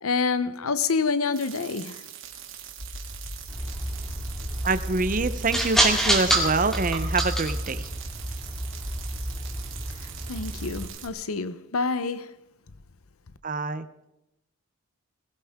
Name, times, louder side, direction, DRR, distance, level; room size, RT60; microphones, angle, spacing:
voice 1, 0.0-2.0 10.3-12.3, left 4 dB, 90° left, 0.8 m, -27 dB
sound 1, 1.3-11.1, right 10 dB, 65° right, 2.2 m, -43 dB
sound 2, 2.2-10.7, equal, 65° left, 2.4 m, -45 dB
sound 3, 3.5-10.9, right 1 dB, ahead, 2.2 m, -28 dB
voice 2, 4.6-7.8 13.4-13.8, right 3 dB, 40° right, 0.7 m, -25 dB
21.0 x 16.0 x 3.6 m
head